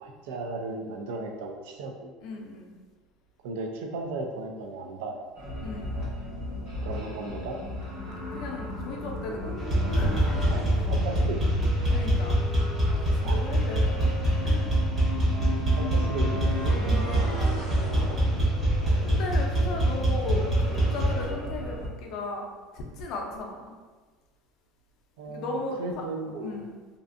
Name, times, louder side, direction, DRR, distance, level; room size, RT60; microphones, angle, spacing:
voice 1, 0.0-2.1 3.4-5.3 6.8-7.6 10.5-11.8 13.2-13.6 15.8-16.5 18.0-18.3 25.2-26.6, right 3 dB, 90° right, 3 dB, 0.4 m, -36 dB
voice 2, 2.2-2.7 5.6-6.0 8.3-10.8 11.9-12.4 13.2-14.2 14.4-14.7 16.7-17.1 19.0-22.5 22.7-23.7 25.2-26.0 26.4-26.7, left 2 dB, 45° left, 1 dB, 0.4 m, -36 dB
sound 1, 5.3-21.9, left 1 dB, 55° right, 1.0 m, -34 dB
sound 2, 9.6-21.3, right 1 dB, 20° right, 0.7 m, -24 dB
2.5 x 2.4 x 2.5 m, 1.3 s
cardioid pair, 165°, 0 cm